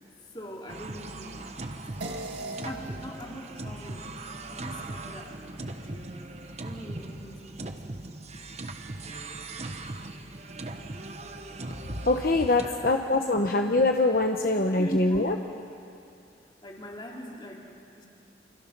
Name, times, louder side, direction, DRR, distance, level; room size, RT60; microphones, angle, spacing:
voice 1, 0.3-1.7 2.6-4.1 4.5-6.3 6.6-8.0 12.6-13.5 14.5-15.5 16.6-17.7 18.0-18.1, equal, 25° left, -1 dB, 3.5 m, -42 dB
sound 1, 0.7-12.7, right 2 dB, 40° right, 1.2 m, -39 dB
sound 2, 2.0-6.7, right 2 dB, 80° right, 2.1 m, -43 dB
voice 2, 12.0-15.4, left 2 dB, 55° left, 3 dB, 1.0 m, -23 dB
29.0 x 26.0 x 6.1 m, 2.5 s
head